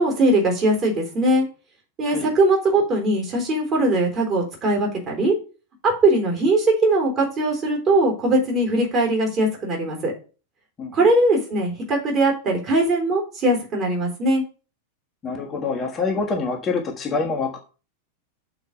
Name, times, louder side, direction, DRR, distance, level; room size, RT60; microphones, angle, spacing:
voice 1, 0.0-1.5 2.0-5.3 5.8-10.1 10.9-14.4, right 1 dB, 30° right, 0 dB, 3.7 m, -20 dB
voice 2, 15.2-17.6, left 4 dB, 25° left, 1 dB, 1.4 m, -26 dB
6.8 x 4.5 x 6.6 m, 0.35 s
figure-of-eight pair, 90°, 0 cm